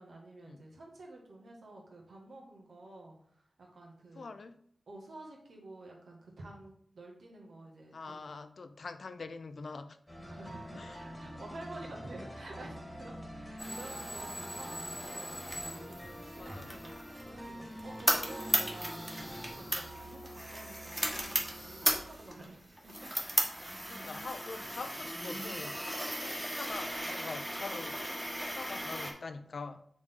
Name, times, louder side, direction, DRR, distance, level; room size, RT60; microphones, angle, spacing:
voice 1, 0.0-3.1 3.6-4.3 4.9-8.3 10.2-23.1 23.7-24.3, right 2 dB, 80° right, 1.8 m, -50 dB
voice 2, 4.1-4.6 7.9-10.0 10.7-11.0 16.4-16.7 23.9-25.9 26.2-29.8, left 4 dB, 65° left, 0.5 m, -44 dB
sound 1, 10.1-22.4, equal, 10° left, 1.5 m, -47 dB
sound 2, 13.6-29.1, equal, 5° right, 1.3 m, -36 dB
6.3 x 3.9 x 3.8 m
wide cardioid pair, 90°, 0 cm